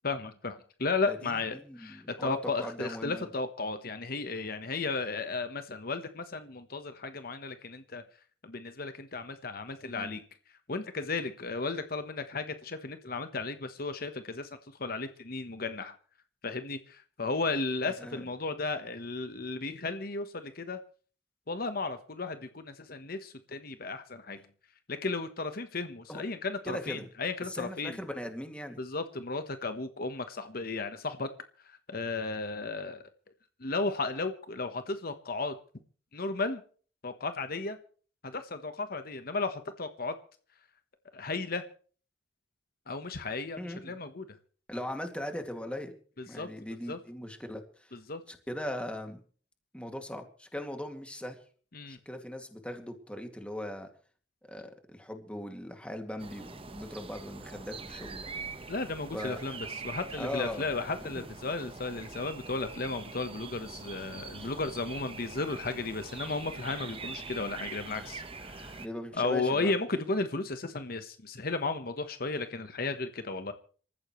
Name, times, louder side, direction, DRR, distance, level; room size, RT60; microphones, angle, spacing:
voice 1, 0.0-8.0 8.4-10.2 10.7-14.5 14.8-15.9 16.4-20.8 21.5-24.4 24.9-28.0 28.8-31.3 31.6-33.0 33.6-35.5 36.1-36.6 37.0-37.8 38.2-40.1 41.1-41.6 42.9-44.3 46.2-46.5 46.9-47.0 47.9-48.2 51.7-52.0 58.7-68.8 69.2-73.5, left 3 dB, 55° left, 9 dB, 1.2 m, -34 dB
voice 2, 1.6-3.3 9.9-10.2 17.9-18.2 26.1-26.2 26.7-27.1 27.5-28.8 43.6-44.0 44.7-46.0 46.3-47.9 48.3-49.2 49.7-51.4 51.9-53.9 54.4-58.3 59.1-59.4 60.2-60.7 61.0-61.3 64.4-64.5 68.8-69.7, left 1 dB, 5° left, 5 dB, 2.4 m, -39 dB
sound 1, 56.2-68.9, right 4 dB, 30° right, 1.2 m, -43 dB
26.5 x 14.5 x 3.2 m, 0.43 s
head